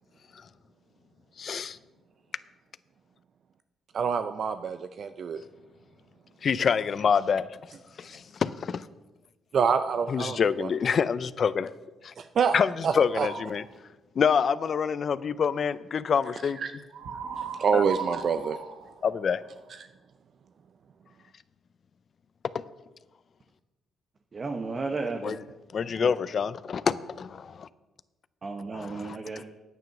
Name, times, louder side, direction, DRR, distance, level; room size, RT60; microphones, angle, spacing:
voice 1, 1.4-1.8 6.4-7.5 8.0-8.9 10.1-11.7 12.0-12.1 12.5-13.6 14.2-16.6 17.7-17.8 19.0-19.4 25.2-25.4 25.7-27.7 28.7-29.5, left 6 dB, 50° left, 0.5 m, -27 dB
voice 2, 3.9-5.4 9.5-10.7 12.2-12.6 12.8-13.3 16.6-16.7 17.4-18.6 19.8-19.9, right 6 dB, 55° right, 0.5 m, -27 dB
sound 1, 13.1-13.6 16.9-19.7, right 6 dB, 70° right, 1.1 m, -37 dB
voice 3, 24.3-25.4 26.0-26.1 28.4-29.4, right 3 dB, 35° right, 0.9 m, -33 dB
9.2 x 9.2 x 6.0 m
cardioid pair, 90°, 0 cm